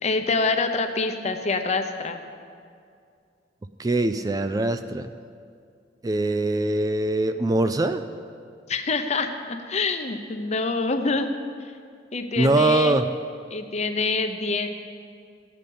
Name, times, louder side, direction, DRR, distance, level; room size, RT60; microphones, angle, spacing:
voice 1, 0.0-2.2 8.7-11.3 11.6-11.7 12.1-13.0 13.5-14.7, left 3 dB, 40° left, 7 dB, 0.7 m, -26 dB
voice 2, 3.8-5.1 6.0-8.0 12.4-13.0, right 2 dB, 20° right, 9 dB, 0.3 m, -22 dB
13.5 x 8.4 x 5.5 m, 2.3 s
head